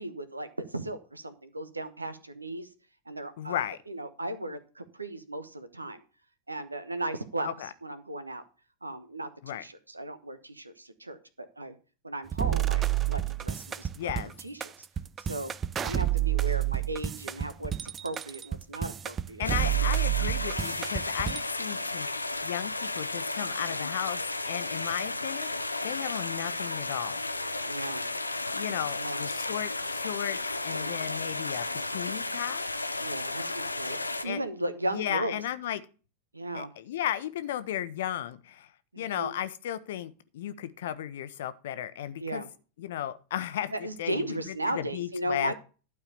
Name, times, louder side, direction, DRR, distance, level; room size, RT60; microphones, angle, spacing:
voice 1, 0.0-2.7 3.1-3.6 3.9-6.0 6.5-8.4 8.8-11.7 12.0-14.9 15.2-15.5 15.8-19.4 27.6-28.1 28.9-29.3 30.7-31.0 33.0-35.4 36.3-36.7 38.9-39.3 42.2-42.5 43.7-45.5, right 1 dB, 80° right, 11 dB, 1.1 m, -36 dB
voice 2, 3.4-3.8 7.4-7.7 9.4-9.6 13.9-14.3 19.4-22.1 22.4-27.2 28.5-32.6 34.2-34.4 34.9-35.8 36.5-38.7 39.0-42.4 42.8-43.7 44.0-44.4 44.8-45.5, left 11 dB, 55° left, 13 dB, 0.9 m, -35 dB
sound 1, 12.3-21.4, right 12 dB, 20° right, 0.5 m, -29 dB
sound 2, 19.4-34.2, left 2 dB, 85° left, 0.7 m, -33 dB
12.0 x 4.7 x 7.0 m, 0.35 s
figure-of-eight pair, 90°, 0 cm